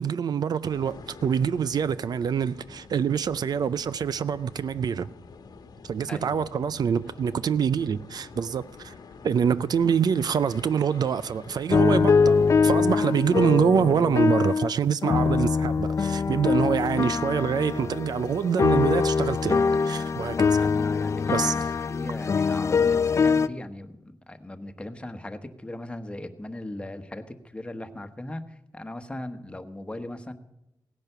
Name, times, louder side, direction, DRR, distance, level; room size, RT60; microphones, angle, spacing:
voice 1, 0.0-5.1 5.8-8.9 9.2-20.6 21.3-21.7, right 7 dB, 65° right, 0.5 m, -25 dB
sound 1, 0.6-13.5, left 4 dB, 70° left, 1.2 m, -47 dB
voice 2, 6.1-6.9 20.6-21.6 21.9-30.3, left 1 dB, 15° left, 1.2 m, -39 dB
sound 2, 11.7-14.7 15.0-23.5, left 5 dB, 40° left, 0.4 m, -23 dB
17.5 x 10.5 x 6.8 m
wide cardioid pair, 115°, 7 cm